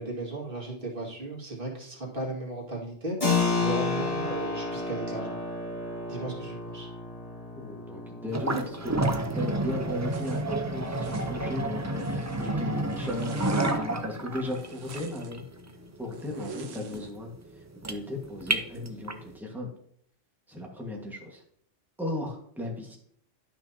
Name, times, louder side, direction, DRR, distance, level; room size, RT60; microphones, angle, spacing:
voice 1, 0.0-5.4 6.1-6.9, right 1 dB, 45° right, -2 dB, 2.2 m, -36 dB
Keyboard (musical), 3.2-13.6, left 3 dB, 25° left, 2.3 m, -33 dB
voice 2, 7.5-8.9 9.3-15.4 16.0-17.3 17.7-19.7 20.5-21.4 22.0-23.0, left 1 dB, ahead, 0 dB, 1.4 m, -36 dB
sound 1, 8.3-19.3, right 2 dB, 25° right, 0.4 m, -30 dB
Zipper (clothing), 10.1-10.4 10.9-11.3 11.8-12.5 12.9-13.8 14.4-15.3 16.1-17.1, right 5 dB, 75° right, 1.2 m, -45 dB
12.0 x 5.8 x 2.8 m, 0.67 s
omnidirectional pair, 1.3 m